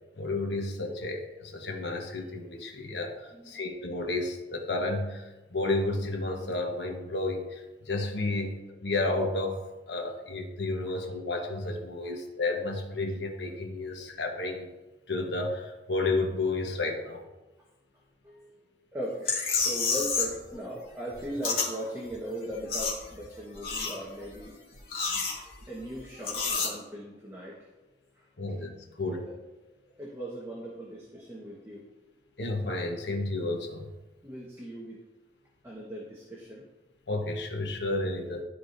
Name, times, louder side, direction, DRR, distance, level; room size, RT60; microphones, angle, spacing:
voice 1, 0.2-14.7 15.1-17.2 28.4-29.2 32.4-33.9 37.1-38.4, left 2 dB, 80° left, 2 dB, 1.2 m, -32 dB
voice 2, 18.2-24.5 25.7-27.7 28.1-28.3 29.1-29.3 30.0-31.9 34.2-35.0 35.6-36.6, equal, 15° right, -5 dB, 1.3 m, -39 dB
sound 1, 19.2-20.4 20.7-21.7 22.0-22.1 22.4-23.3 23.5-24.3 24.8-25.8 26.2-26.7, left 4 dB, 55° left, 2.1 m, -29 dB
13.0 x 5.0 x 2.6 m, 1.1 s
head